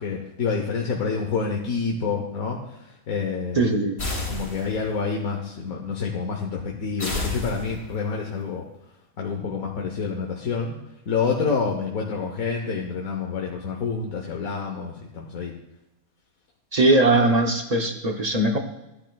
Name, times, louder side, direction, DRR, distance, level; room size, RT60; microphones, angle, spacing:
voice 1, 0.0-3.6 4.3-8.6 9.2-10.7 11.1-15.5, left 5 dB, 80° left, 0 dB, 1.5 m, -28 dB
voice 2, 3.6-4.0 16.7-18.6, right 2 dB, 35° right, 3 dB, 0.8 m, -20 dB
sound 1, 4.0-5.0 7.0-8.1, left 2 dB, 60° left, 3.3 m, -31 dB
14.0 x 9.9 x 2.4 m, 0.97 s
omnidirectional pair, 1.5 m